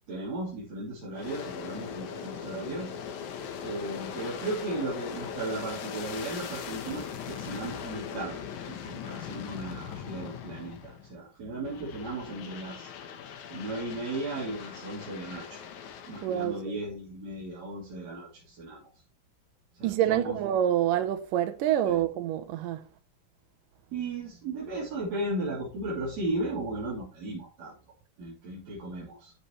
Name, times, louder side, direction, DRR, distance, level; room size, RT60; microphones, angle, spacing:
voice 1, 0.1-2.9 3.6-12.9 13.5-15.6 16.1-18.8 19.8-20.4 21.8-22.0 23.9-27.7 28.2-29.3, right 2 dB, 55° right, 4.4 m, -36 dB
Aircraft, 1.1-11.2 11.6-16.6, left 7 dB, 70° left, 2.5 m, -40 dB
voice 2, 16.2-16.6 19.8-22.8, right 11 dB, 90° right, 2.6 m, -27 dB
14.0 x 6.2 x 3.2 m
omnidirectional pair, 3.7 m